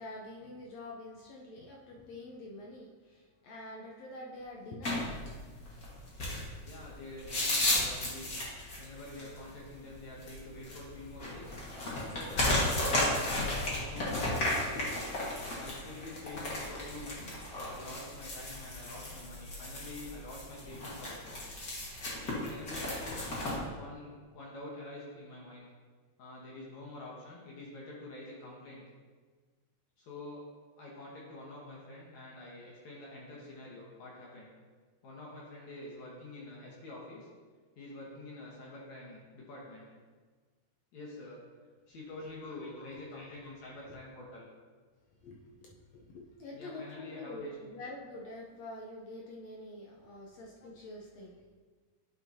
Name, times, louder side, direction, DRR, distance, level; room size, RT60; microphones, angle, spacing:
voice 1, 0.0-5.1 42.3-44.0 45.2-51.5, left 2 dB, 80° left, -3 dB, 1.5 m, -47 dB
sound 1, 4.8-23.6, left 1 dB, 40° left, 1.5 m, -34 dB
voice 2, 6.6-8.3 8.8-11.5 11.9-14.5 15.6-17.4 17.7-21.4 22.4-23.1 23.8-25.7 26.2-28.8 30.0-30.4 30.8-34.5 35.0-37.3 37.8-39.9 40.9-41.4 41.9-44.5 46.5-47.6, left 2 dB, 65° left, -4 dB, 2.3 m, -47 dB
11.0 x 5.4 x 2.8 m, 1.5 s
omnidirectional pair, 3.9 m